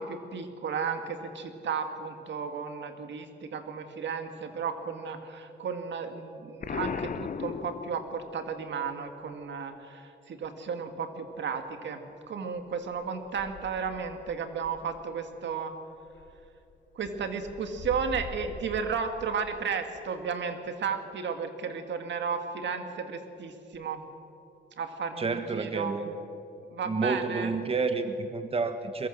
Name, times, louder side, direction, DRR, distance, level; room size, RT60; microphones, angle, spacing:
voice 1, 0.0-12.0 12.3-15.7 17.0-24.0 24.8-25.9 26.7-27.5, right 6 dB, 70° right, 7 dB, 2.1 m, -34 dB
Explosion, 6.6-8.4, left 6 dB, 45° left, 0.8 m, -35 dB
sound 1, 11.8-11.9 12.5-15.5 16.0-18.8, left 4 dB, 70° left, 2.7 m, -46 dB
voice 2, 25.2-26.1 26.9-29.1, right 4 dB, 30° right, 8 dB, 1.3 m, -29 dB
22.0 x 22.0 x 6.6 m, 2.7 s
cardioid pair, 90°, 19 cm